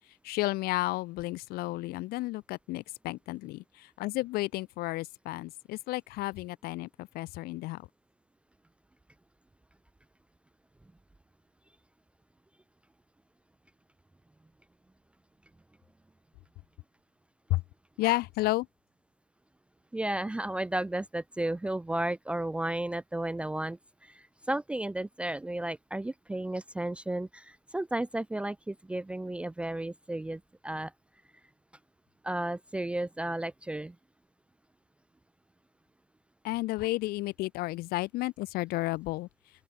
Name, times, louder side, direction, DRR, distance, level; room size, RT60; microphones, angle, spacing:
voice 1, 0.2-7.9 17.5-17.6 18.0-18.7 36.4-39.3, left 19 dB, 20° left, 1.7 m, -32 dB
voice 2, 19.9-30.9 32.2-33.9, right 1 dB, 5° right, 1.5 m, -33 dB
open air
hypercardioid pair, 130°, 42 cm